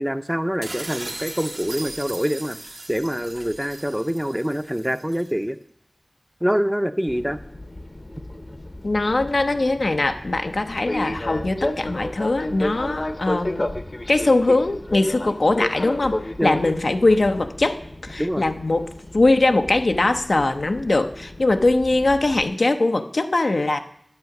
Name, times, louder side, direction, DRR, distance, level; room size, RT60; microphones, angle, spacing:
voice 1, 0.0-2.6 2.9-5.6 6.4-7.4 16.4-16.6 18.2-18.4, equal, 10° right, 10 dB, 0.6 m, -25 dB
sound 1, 0.6-5.3, right 2 dB, 75° right, 1.4 m, -38 dB
Fixed-wing aircraft airplane, 7.1-22.4, left 1 dB, 50° left, 0.8 m, -33 dB
voice 2, 8.8-13.7 14.1-18.9 19.1-23.8, left 2 dB, 80° left, 7 dB, 0.7 m, -21 dB
9.5 x 7.4 x 5.9 m, 0.69 s
wide cardioid pair, 45°, 0 cm